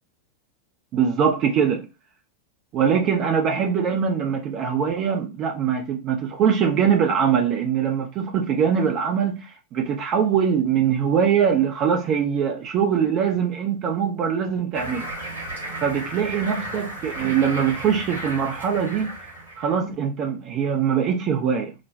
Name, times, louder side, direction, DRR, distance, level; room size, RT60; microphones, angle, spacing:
voice 1, 0.9-1.9 2.7-15.1 15.8-19.3 19.6-21.7, right 7 dB, 35° right, 0.7 m, -22 dB
sound 1, 14.7-19.8, right 1 dB, 85° right, 2.5 m, -34 dB
5.1 x 2.2 x 2.6 m
figure-of-eight pair, 90°, 0 cm